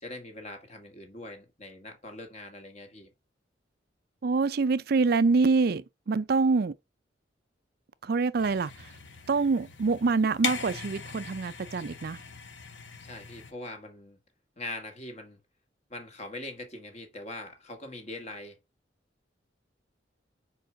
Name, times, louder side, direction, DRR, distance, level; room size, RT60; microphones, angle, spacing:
voice 1, 0.0-3.1 13.0-14.2 14.6-15.4 15.9-18.6, left 2 dB, 40° left, 1.8 m, -42 dB
voice 2, 4.2-6.7 8.0-8.9 9.3-12.2, right 4 dB, 55° right, 0.4 m, -25 dB
sound 1, 8.4-13.5, left 6 dB, 80° left, 1.2 m, -39 dB
5.0 x 4.8 x 6.1 m
head